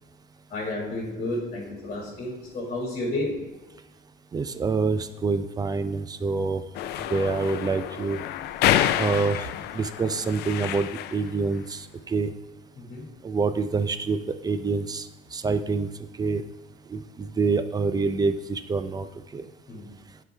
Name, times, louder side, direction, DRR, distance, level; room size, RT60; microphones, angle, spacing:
voice 1, 0.5-3.4 12.8-13.1 19.7-19.9, left 2 dB, 40° left, -2 dB, 2.0 m, -31 dB
voice 2, 4.3-6.6 7.1-8.2 9.0-9.4 9.7-12.3 13.2-15.1 15.3-15.9 16.2-16.4 16.9-19.1 19.3-19.5, right 4 dB, 25° right, 11 dB, 0.4 m, -26 dB
sound 1, 6.7-11.3, left 12 dB, 75° left, 0.4 m, -28 dB
9.6 x 3.9 x 3.4 m, 1.2 s
cardioid pair, 110°, 17 cm